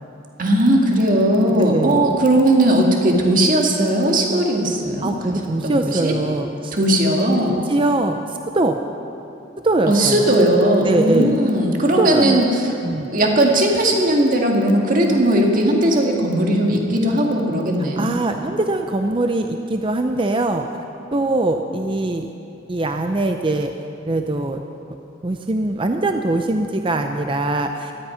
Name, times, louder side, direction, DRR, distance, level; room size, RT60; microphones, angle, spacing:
voice 1, 0.4-5.4 5.6-6.1 6.7-7.7 9.9-12.7 13.1-18.1, right 1 dB, 45° right, 0 dB, 1.9 m, -18 dB
voice 2, 1.5-2.1 5.0-6.7 7.4-8.8 9.6-10.3 10.8-11.4 12.0-12.4 12.8-13.1 18.0-20.7 21.1-22.3 22.7-23.7 24.1-24.6 25.2-27.9, right 2 dB, 25° right, 5 dB, 0.5 m, -22 dB
17.5 x 13.5 x 5.7 m, 2.8 s
head